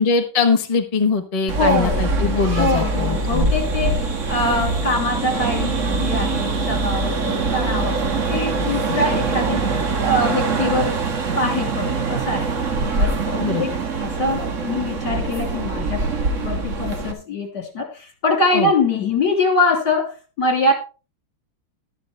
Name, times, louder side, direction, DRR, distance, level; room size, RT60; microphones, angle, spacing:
voice 1, 0.0-4.0 8.9-9.0 13.4-13.6 18.5-18.7, left 4 dB, 25° left, 5 dB, 0.8 m, -22 dB
sound 1, 1.5-17.1, right 3 dB, 40° right, 1.5 m, -23 dB
voice 2, 1.6-2.0 2.6-9.6 10.0-11.0 11.3-12.5 13.0-16.1 16.4-20.7, left 2 dB, 55° left, 3 dB, 3.5 m, -23 dB
12.0 x 11.0 x 3.3 m, 0.32 s
omnidirectional pair, 2.2 m